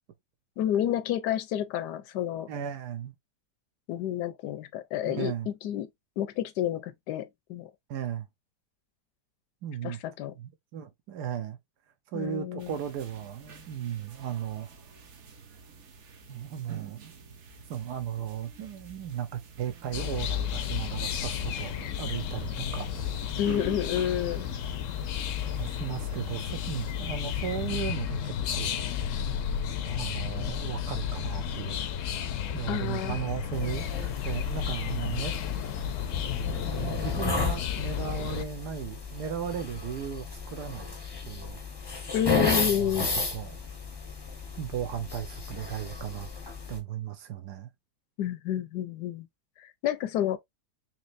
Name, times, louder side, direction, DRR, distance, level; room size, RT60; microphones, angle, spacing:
voice 1, 0.6-2.5 3.9-5.9 6.2-7.7 9.8-10.3 12.1-12.8 23.4-24.5 32.7-33.2 42.1-43.1 48.2-49.3 49.6-50.4, left 11 dB, 85° left, 1.2 m, -30 dB
voice 2, 2.5-3.1 5.0-5.5 7.9-8.3 9.6-10.0 10.4-11.6 12.1-14.7 16.3-17.0 17.7-22.9 25.6-28.9 29.8-31.9 32.5-35.4 36.7-40.9 41.3-41.6 41.9-42.1 42.4-43.0 43.3-43.6 44.6-46.3 46.7-47.7, right 9 dB, 80° right, 1.4 m, -36 dB
sound 1, 12.6-27.7, right 5 dB, 50° right, 1.0 m, -48 dB
sound 2, 19.9-38.5, left 8 dB, 65° left, 0.8 m, -32 dB
sound 3, 33.5-46.8, left 3 dB, 25° left, 0.5 m, -34 dB
4.2 x 3.0 x 2.5 m
omnidirectional pair, 1.8 m